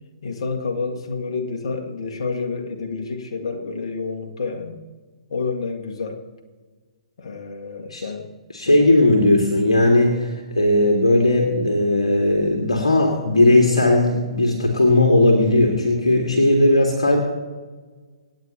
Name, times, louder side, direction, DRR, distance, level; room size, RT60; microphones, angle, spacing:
voice 1, 0.2-4.8 5.3-6.2 7.2-8.3 8.7-8.9, left 4 dB, 55° left, 4 dB, 1.9 m, -29 dB
voice 2, 8.5-17.2, left 1 dB, 70° left, 0 dB, 2.1 m, -17 dB
27.0 x 9.0 x 3.0 m, 1.4 s
figure-of-eight pair, 120°, 3 cm